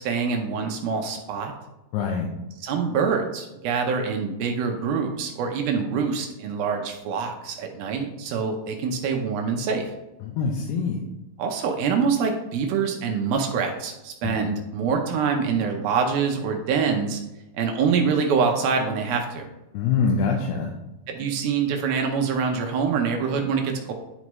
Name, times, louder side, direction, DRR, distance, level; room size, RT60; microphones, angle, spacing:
voice 1, 0.0-1.5 2.6-9.9 11.4-17.2 17.5-19.5 21.1-23.9, right 5 dB, 75° right, 3 dB, 2.4 m, -25 dB
voice 2, 1.9-2.3 10.2-11.0 14.2-14.4 19.7-20.7, left 5 dB, 85° left, 0 dB, 2.8 m, -24 dB
10.5 x 4.8 x 3.1 m, 0.98 s
omnidirectional pair, 4.7 m